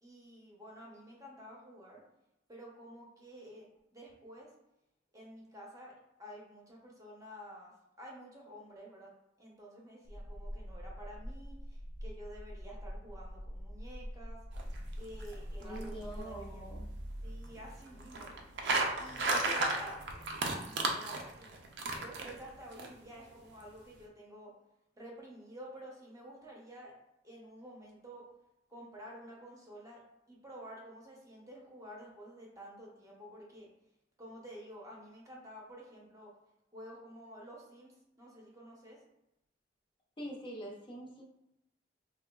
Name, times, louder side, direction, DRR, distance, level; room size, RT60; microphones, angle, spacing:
voice 1, 0.0-2.0 2.5-4.5 5.1-7.7 8.0-9.1 9.4-14.4 15.0-16.6 17.2-18.3 19.0-20.0 20.7-21.7 21.9-24.5 24.9-26.9 27.2-28.3 28.7-30.0 30.3-33.7 34.2-36.3 36.7-39.0, equal, 20° right, -3 dB, 0.6 m, -50 dB
sound 1, 10.0-16.2, equal, 85° left, 0.6 m, -44 dB
sound 2, 14.5-22.9, right 2 dB, 70° right, 0.4 m, -36 dB
voice 2, 15.6-16.9 19.4-20.0 40.2-41.2, equal, 30° left, -2 dB, 0.5 m, -44 dB
3.7 x 2.2 x 2.2 m, 0.87 s
head